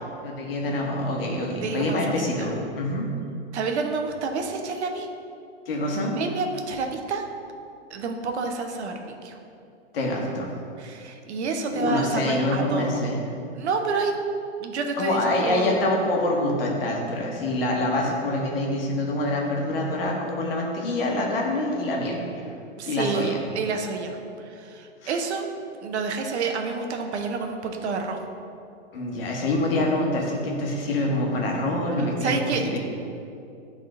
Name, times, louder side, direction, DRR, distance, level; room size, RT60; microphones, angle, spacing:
voice 1, 0.2-3.1 5.7-6.2 9.9-10.5 11.7-13.2 15.0-22.2 22.9-23.4 25.0-25.2 28.9-32.8, left 1 dB, 55° left, -1 dB, 1.3 m, -26 dB
voice 2, 1.6-2.5 3.5-5.1 5.9-7.2 7.9-9.4 10.8-13.0 13.5-14.1 14.6-15.8 22.8-25.5 25.8-28.2 32.2-32.8, right 4 dB, 70° right, 4 dB, 0.9 m, -29 dB
9.4 x 3.7 x 3.7 m, 2.5 s
hypercardioid pair, 175°, 35 cm